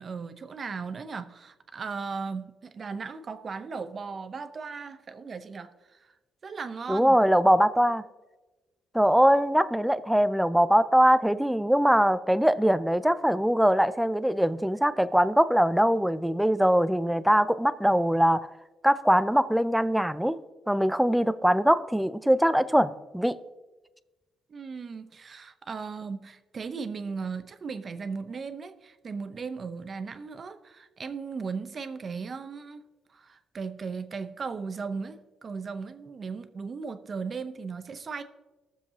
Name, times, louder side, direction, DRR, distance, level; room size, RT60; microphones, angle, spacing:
voice 1, 0.0-6.1 6.4-7.2 24.5-32.8 33.1-38.2, right 5 dB, 35° right, 10 dB, 0.7 m, -37 dB
voice 2, 6.9-8.0 8.9-18.5 18.8-20.4 20.7-23.4, equal, ahead, 13 dB, 0.4 m, -22 dB
21.5 x 7.3 x 2.8 m, 1.2 s
cardioid pair, 130°, 0 cm